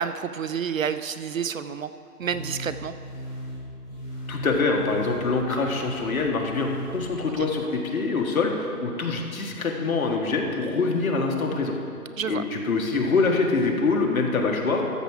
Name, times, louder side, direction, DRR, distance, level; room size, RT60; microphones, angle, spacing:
voice 1, 0.0-1.9 2.2-2.9 7.4-7.5 12.2-12.4, right 7 dB, 60° right, 12 dB, 0.5 m, -29 dB
sound 1, 2.2-7.3, equal, 5° left, 0.7 m, -37 dB
voice 2, 4.3-11.7 12.3-14.8, left 3 dB, 60° left, 1 dB, 1.7 m, -25 dB
13.0 x 4.8 x 7.3 m, 2.5 s
hypercardioid pair, 170°, 47 cm